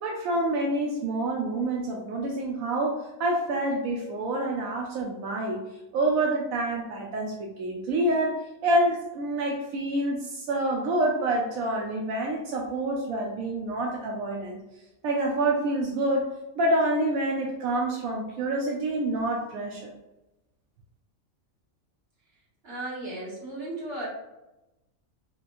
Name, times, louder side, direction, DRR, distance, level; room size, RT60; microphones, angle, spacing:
voice 1, 0.0-5.6 5.9-14.6 15.0-16.3 16.6-19.9, right 1 dB, 85° right, -1 dB, 1.0 m, -27 dB
voice 2, 22.6-24.1, right 2 dB, 50° right, -6 dB, 1.6 m, -35 dB
3.0 x 2.9 x 2.5 m, 0.94 s
omnidirectional pair, 1.4 m